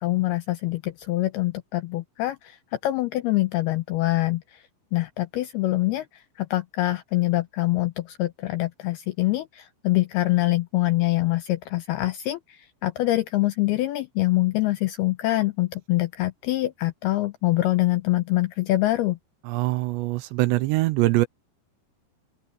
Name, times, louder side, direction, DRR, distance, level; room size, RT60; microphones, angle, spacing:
voice 1, 0.0-4.6 4.9-19.2, left 17 dB, 80° left, 2.3 m, -25 dB
voice 2, 19.4-21.3, right 18 dB, 80° right, 2.8 m, -23 dB
open air
omnidirectional pair, 5.4 m